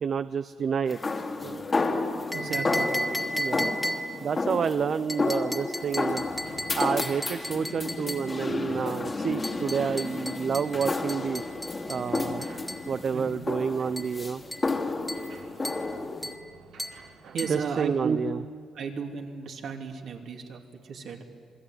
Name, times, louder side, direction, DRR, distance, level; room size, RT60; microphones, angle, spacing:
voice 1, 0.0-1.0 1.4-1.6 3.4-3.7 4.2-6.2 6.7-11.4 11.9-12.4 12.9-14.4 17.5-18.4, right 6 dB, 50° right, 13 dB, 0.6 m, -29 dB
sound 1, 0.9-16.3, left 3 dB, 30° left, 2.2 m, -31 dB
sound 2, 2.3-4.3 5.1-8.3 9.4-12.9 14.0-14.2 14.5-14.8 15.1-15.4 15.6-15.9 16.2-16.5 16.8-17.0 17.4-17.6, equal, 5° left, 2.2 m, -35 dB
voice 2, 2.3-2.9 13.1-13.5 17.3-18.2 18.7-21.2, right 5 dB, 65° right, 2 dB, 3.0 m, -33 dB
sound 3, 5.7-17.7, right 3 dB, 85° right, 4.4 m, -53 dB
27.5 x 20.0 x 9.4 m, 2.2 s
cardioid pair, 90°, 0 cm